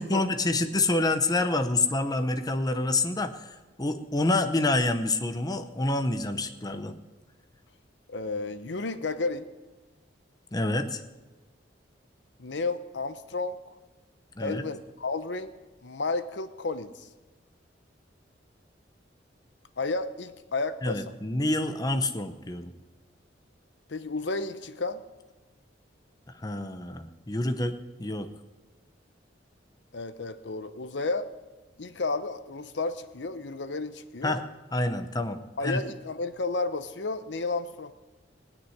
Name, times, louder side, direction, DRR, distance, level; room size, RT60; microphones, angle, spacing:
voice 1, 0.0-7.0 10.5-11.0 14.4-14.6 20.8-22.7 26.3-28.3 34.2-34.4 34.7-35.8, left 2 dB, 20° left, 8 dB, 0.8 m, -27 dB
voice 2, 8.1-9.5 12.4-13.6 14.4-15.5 15.8-17.1 19.8-21.2 23.9-25.0 29.9-31.3 31.8-34.4 35.6-37.9, left 3 dB, 70° left, 11 dB, 0.8 m, -32 dB
18.5 x 6.3 x 9.9 m, 1.2 s
head